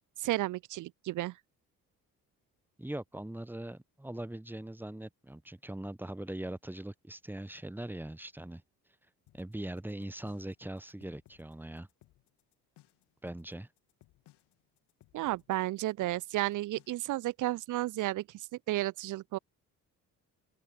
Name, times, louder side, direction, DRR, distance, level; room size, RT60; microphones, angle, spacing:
voice 1, 0.2-1.3 15.1-19.4, right 16 dB, 45° right, 0.6 m, -33 dB
voice 2, 2.8-8.6 9.3-11.9 13.2-13.7, right 1 dB, 5° right, 1.0 m, -41 dB
sound 1, 9.3-17.2, left 16 dB, 60° left, 2.3 m, -64 dB
open air
figure-of-eight pair, 45°, 46 cm